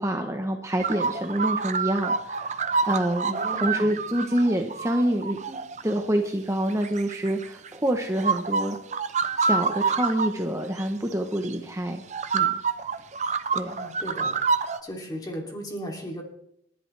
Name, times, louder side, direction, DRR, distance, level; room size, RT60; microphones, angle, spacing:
voice 1, 0.0-8.8 9.4-12.0 12.3-12.6 13.5-13.8, right 1 dB, 15° right, 4 dB, 0.9 m, -27 dB
sound 1, 0.8-6.0 6.7-7.8 8.1-10.3 10.8-10.9 11.4-11.5 12.1-14.8, right 5 dB, 40° right, 0.7 m, -27 dB
voice 2, 3.1-3.9 13.6-14.3 14.8-16.2, equal, 20° left, 1 dB, 2.8 m, -36 dB
29.0 x 11.0 x 3.3 m, 0.75 s
head